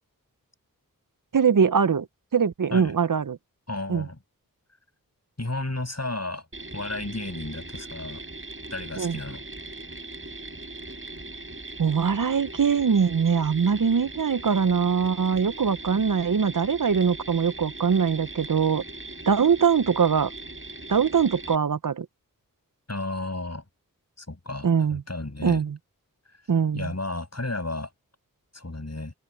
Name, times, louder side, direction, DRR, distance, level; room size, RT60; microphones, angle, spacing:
voice 1, 1.3-2.1 2.3-3.4 3.9-4.1 9.0-9.2 11.8-18.8 19.3-20.3 20.9-22.1 24.6-25.0 25.4-25.8 26.5-26.9, right 6 dB, 65° right, 0.6 m, -22 dB
voice 2, 3.7-4.2 5.4-6.4 6.7-8.2 8.7-9.4 22.9-23.6 24.2-25.6 26.7-27.9 28.5-29.1, left 2 dB, 45° left, 7.3 m, -33 dB
Mechanisms, 6.5-21.6, right 2 dB, 35° right, 4.4 m, -40 dB
open air
wide cardioid pair, 40°, 35 cm